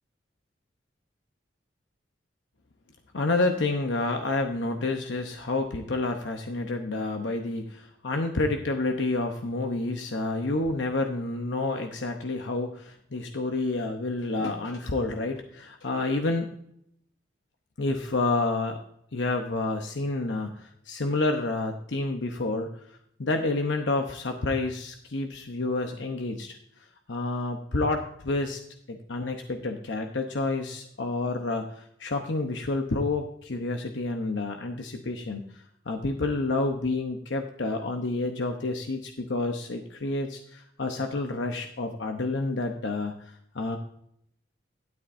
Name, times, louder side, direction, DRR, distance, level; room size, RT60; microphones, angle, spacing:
voice 1, 3.1-16.5 17.8-18.8 19.1-26.6 27.1-28.6 28.9-43.8, left 2 dB, 75° left, 4 dB, 0.8 m, -29 dB
12.0 x 9.8 x 2.6 m, 0.71 s
head